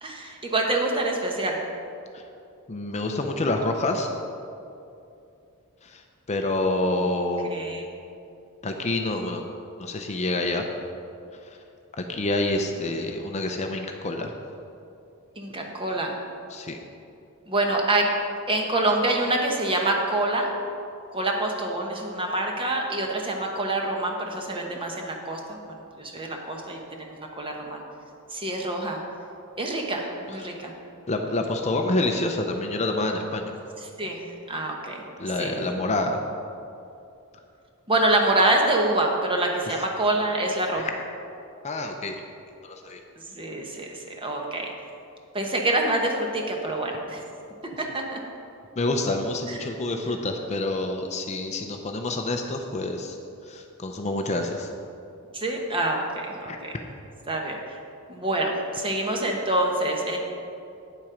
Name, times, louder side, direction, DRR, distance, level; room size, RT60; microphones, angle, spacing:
voice 1, 0.0-1.6 6.9-7.1 7.5-7.8 15.4-16.2 17.5-18.1 18.5-20.5 21.1-27.8 28.3-29.0 29.6-30.7 33.8-35.0 35.4-35.6 37.9-40.9 43.3-44.7 45.3-47.2 47.8-48.2 49.5-49.6 55.3-56.7 57.3-57.8 58.1-60.2, right 2 dB, 25° right, 1 dB, 1.0 m, -26 dB
voice 2, 2.7-4.1 5.8-6.0 6.3-7.5 8.6-9.4 9.8-10.6 12.1-14.3 16.5-16.8 30.4-30.5 31.1-33.5 35.2-36.2 40.9-41.0 41.6-42.1 42.6-43.0 48.8-53.2 53.5-54.7 56.5-56.6, left 2 dB, 30° left, 4 dB, 0.6 m, -27 dB
9.0 x 7.3 x 5.0 m, 2.6 s
head